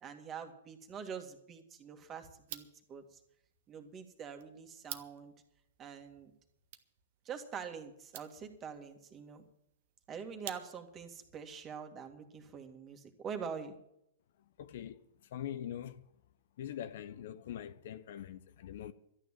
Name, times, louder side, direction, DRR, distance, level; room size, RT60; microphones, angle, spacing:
voice 1, 0.0-3.2 3.7-5.3 5.8-6.3 7.2-9.5 10.1-13.7, right 6 dB, 25° right, 2.1 m, -45 dB
sound 1, 2.4-11.1, right 12 dB, 55° right, 1.2 m, -53 dB
voice 2, 14.6-15.0 15.3-16.1 16.6-18.9, left 10 dB, 60° left, 0.8 m, -43 dB
13.0 x 9.5 x 7.4 m
hypercardioid pair, 115°, 0 cm